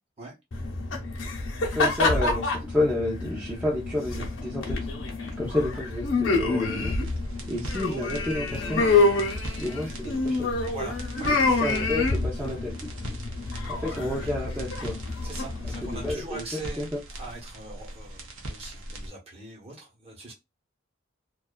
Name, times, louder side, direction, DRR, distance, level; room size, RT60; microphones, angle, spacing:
sound 1, 0.5-16.1, left 3 dB, 65° left, 0.7 m, -27 dB
voice 1, 1.7-4.9 5.4-7.0 7.5-8.9 9.6-10.5 11.3-12.9 13.7-15.0 15.8-17.0, left 2 dB, 10° right, 0.5 m, -30 dB
sound 2, 6.9-19.1, right 1 dB, 75° right, 0.7 m, -40 dB
voice 2, 10.7-11.7 13.9-14.5 15.2-20.3, right 2 dB, 30° right, 0.9 m, -42 dB
2.5 x 2.3 x 2.2 m
head